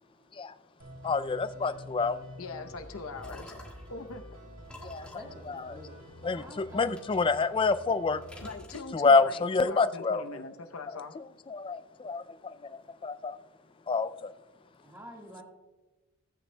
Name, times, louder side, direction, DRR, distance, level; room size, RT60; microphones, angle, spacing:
sound 1, 0.8-8.4, equal, 60° right, 3.0 m, -48 dB
voice 1, 1.0-2.2 4.8-5.1 5.4-5.8 6.2-8.2 8.9-10.2 10.9-13.4 13.9-14.3, left 4 dB, 25° left, 0.3 m, -28 dB
voice 2, 2.4-3.5 3.9-4.2 8.4-11.1, left 3 dB, 70° left, 0.7 m, -41 dB
sound 2, 2.9-4.0 4.6-6.4 6.9-7.9 8.2-9.3, left 1 dB, 5° left, 1.5 m, -49 dB
voice 3, 5.1-5.9 6.3-7.0 14.8-15.4, equal, 10° right, 1.6 m, -47 dB
16.5 x 8.8 x 2.2 m
head